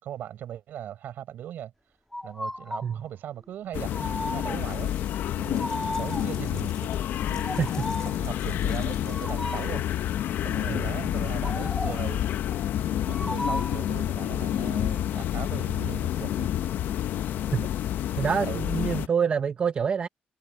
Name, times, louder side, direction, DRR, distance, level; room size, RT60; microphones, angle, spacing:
voice 1, 0.0-1.7 2.2-4.9 5.4-6.9 7.3-7.6 8.0-9.9 10.4-12.2 12.8-16.5 17.6-17.7 18.1-18.7, right 11 dB, 70° right, 6.6 m, -39 dB
sound 1, 2.1-2.9 3.9-4.8 5.6-6.5 7.4-8.2 9.1-9.8 11.4-12.1 13.1-13.9, left 1 dB, 5° left, 1.6 m, -35 dB
sound 2, 3.7-19.1, left 11 dB, 75° left, 0.7 m, -29 dB
sound 3, 4.5-10.1, left 3 dB, 20° left, 3.2 m, -52 dB
voice 2, 18.2-20.1, right 6 dB, 35° right, 0.8 m, -26 dB
cardioid pair, 150°, 3 cm